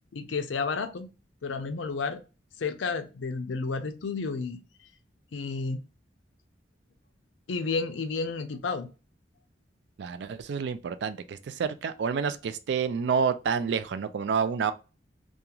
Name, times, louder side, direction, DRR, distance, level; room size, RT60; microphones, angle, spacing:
voice 1, 0.1-1.1 1.4-2.2 2.6-4.6 5.3-5.8 7.5-8.9, left 4 dB, 85° left, 0.5 m, -31 dB
voice 2, 10.0-14.7, right 6 dB, 65° right, 0.3 m, -29 dB
2.9 x 2.4 x 2.3 m
head